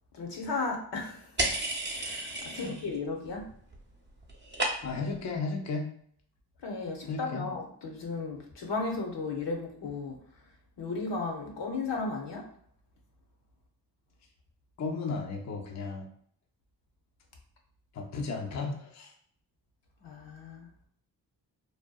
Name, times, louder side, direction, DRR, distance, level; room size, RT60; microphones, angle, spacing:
voice 1, 0.1-1.3 2.0-3.4 6.6-10.2 10.8-12.4 20.0-20.7, left 3 dB, 75° left, 1 dB, 0.7 m, -35 dB
sound 1, 1.4-3.0 3.3-5.1, right 1 dB, 25° right, 0.6 m, -33 dB
voice 2, 4.8-5.9 7.0-7.5 14.8-16.1 17.9-19.1, left 4 dB, 45° left, 2 dB, 0.5 m, -34 dB
2.6 x 2.1 x 2.3 m, 0.62 s
cardioid pair, 55°, 42 cm